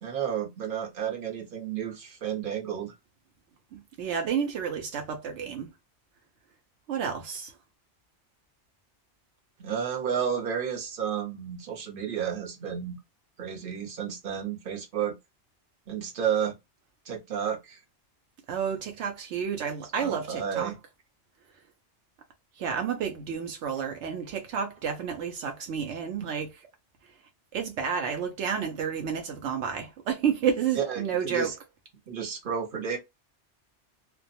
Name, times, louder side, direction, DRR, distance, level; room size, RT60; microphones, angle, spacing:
voice 1, 0.0-2.9 9.6-13.0 13.4-15.1 15.9-16.5 17.1-17.8 20.0-20.8 26.2-26.3 30.8-31.5 32.1-33.0, right 8 dB, 50° right, 1.0 m, -31 dB
voice 2, 3.7-5.7 6.9-7.5 18.5-20.7 22.6-26.5 27.5-31.5, right 7 dB, 80° right, 0.9 m, -30 dB
2.3 x 2.1 x 2.6 m
omnidirectional pair, 1.2 m